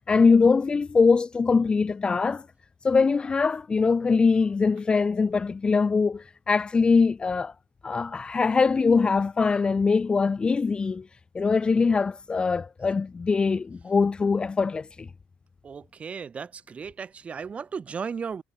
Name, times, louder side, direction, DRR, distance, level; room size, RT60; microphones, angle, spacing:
voice 1, 0.1-2.4 2.8-7.5 7.8-11.0 11.3-15.1, left 4 dB, 20° left, 1.2 m, -22 dB
voice 2, 15.6-18.4, right 6 dB, 25° right, 5.7 m, -35 dB
cardioid pair, 135°, 5 cm